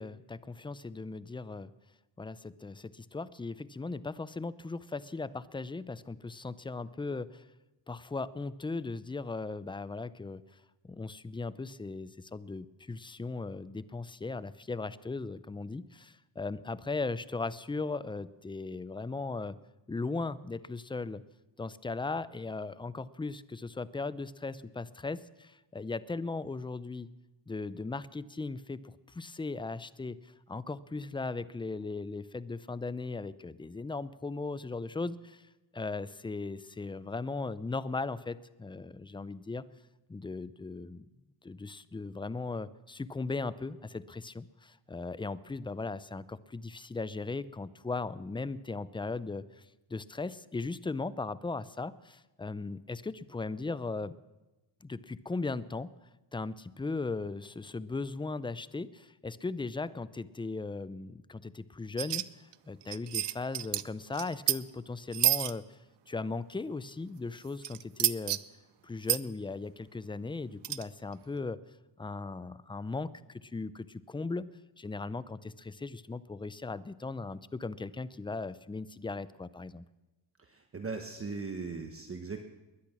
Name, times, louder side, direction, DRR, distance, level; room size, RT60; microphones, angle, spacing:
voice 1, 0.0-1.7 2.2-7.4 7.9-10.4 10.8-19.6 19.9-21.2 21.6-27.1 27.5-35.5 35.7-39.6 40.1-41.1 41.4-49.6 49.9-54.1 54.8-55.9 56.3-65.8 66.1-68.4 68.8-71.6 72.0-74.5 74.8-79.9, left 3 dB, 10° left, 16 dB, 0.4 m, -38 dB
sound 1, 62.0-62.2 62.5-62.6 62.8-63.8 64.1-64.6 65.1-65.5 67.6-68.4 69.0-69.2 70.6-70.8, right 14 dB, 60° right, 0.6 m, -29 dB
voice 2, 80.4-82.4, right 4 dB, 30° right, 6 dB, 1.1 m, -39 dB
21.0 x 10.0 x 6.1 m, 1.1 s
cardioid pair, 95°, 46 cm